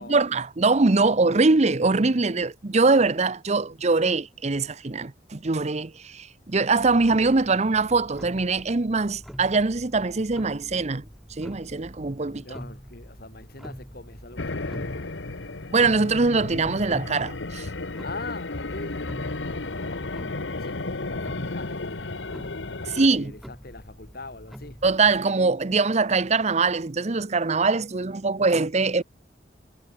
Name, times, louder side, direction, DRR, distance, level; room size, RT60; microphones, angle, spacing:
voice 1, 0.0-11.0 11.4-12.4 15.7-17.7 22.9-23.3 24.8-29.0, right 3 dB, 35° right, 0.8 m, -22 dB
Clock, 6.8-25.2, equal, ahead, 1.7 m, -45 dB
voice 2, 12.3-15.1 18.0-22.2 22.8-24.8, left 3 dB, 55° left, 3.1 m, -42 dB
sound 1, 14.4-23.1, left 2 dB, 80° left, 1.4 m, -33 dB
head